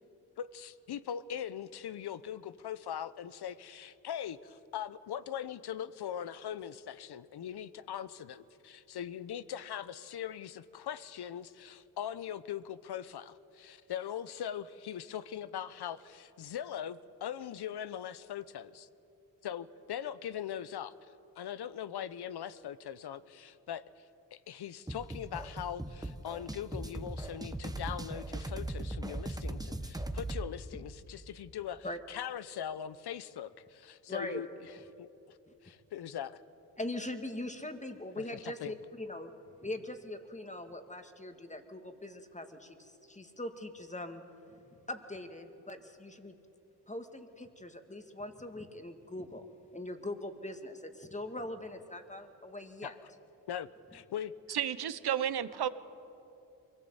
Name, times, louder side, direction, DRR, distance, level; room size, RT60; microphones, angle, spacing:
voice 1, 0.4-18.9 19.4-20.9 21.4-24.0 24.3-34.5 35.0-35.4 35.6-36.4 38.2-38.7 52.8-52.9 53.5-54.6, left 9 dB, 65° left, 16 dB, 0.9 m, -41 dB
sound 1, 24.9-30.5, right 1 dB, 10° right, 1.3 m, -39 dB
voice 2, 34.1-34.4 36.8-39.3 39.6-44.2 44.7-46.4 46.9-49.5 49.7-52.9, left 1 dB, 15° left, 7 dB, 2.2 m, -41 dB
voice 3, 54.5-55.7, right 10 dB, 65° right, 14 dB, 1.1 m, -32 dB
23.5 x 17.0 x 8.1 m, 2.8 s
supercardioid pair, 50°, 42 cm